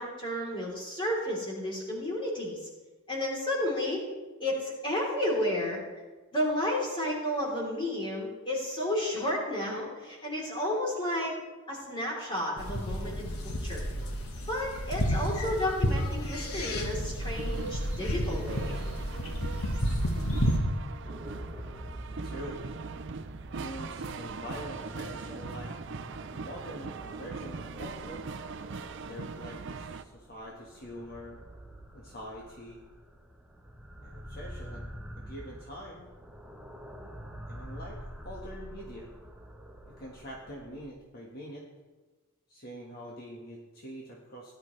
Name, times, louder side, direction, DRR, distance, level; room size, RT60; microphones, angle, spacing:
voice 1, 0.0-2.7 3.1-4.1 4.4-5.8 6.3-11.3 11.7-13.9 14.5-18.8, left 1 dB, 20° left, -3 dB, 3.5 m, -32 dB
sound 1, 12.6-20.6, equal, 80° left, 1.5 m, -31 dB
sound 2, 17.2-30.0, right 4 dB, 55° right, 0.5 m, -41 dB
sound 3, 21.0-40.9, equal, 5° right, 0.9 m, -46 dB
voice 2, 22.2-22.6 23.6-25.7 26.3-28.2 29.0-31.4 31.9-32.8 34.0-34.8 35.2-36.1 37.5-39.1 39.8-41.6 42.5-44.5, equal, 45° left, -2 dB, 1.5 m, -44 dB
18.0 x 11.0 x 3.3 m, 1.3 s
head